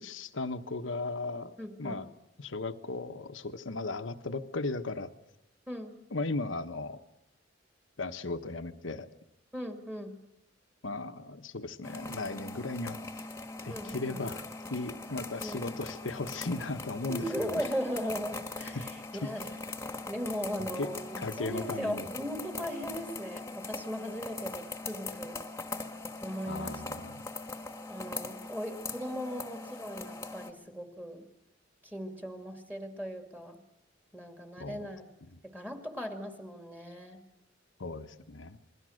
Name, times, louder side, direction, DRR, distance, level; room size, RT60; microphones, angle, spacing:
voice 1, 0.0-2.1 2.4-5.1 6.1-7.0 8.0-9.1 10.8-13.0 13.6-14.4 14.7-17.6 18.7-18.9 20.8-20.9 21.2-22.1 26.5-27.2 34.6-34.9 37.8-38.6, left 3 dB, 80° left, 9 dB, 1.2 m, -36 dB
voice 2, 1.6-2.0 5.7-5.9 9.5-10.1 13.7-14.3 15.4-15.7 17.1-19.5 20.1-25.4 26.2-26.8 27.9-31.3 31.8-33.6 34.1-35.0 35.4-37.2, equal, 10° right, 5 dB, 2.2 m, -38 dB
sound 1, 11.8-30.5, left 3 dB, 15° left, 1.6 m, -41 dB
28.0 x 21.5 x 6.5 m, 0.91 s
head